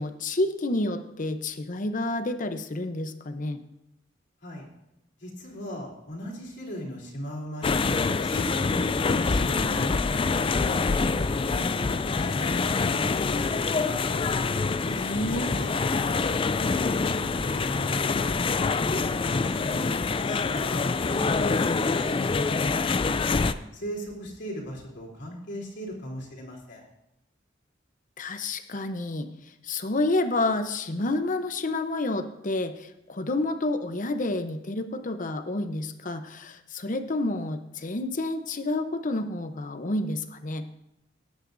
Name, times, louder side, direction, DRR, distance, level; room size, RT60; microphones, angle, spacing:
voice 1, 0.0-3.6 14.9-15.5 28.2-29.3 29.6-40.7, left 2 dB, 45° left, 9 dB, 0.8 m, -29 dB
voice 2, 5.2-11.9 12.2-12.8 13.2-14.0 14.8-18.6 19.2-19.9 20.3-22.6 23.7-26.8, equal, 65° left, -3 dB, 3.4 m, -38 dB
sound 1, 7.6-23.5, left 4 dB, 30° left, 0.4 m, -26 dB
17.5 x 9.8 x 2.6 m, 0.88 s
head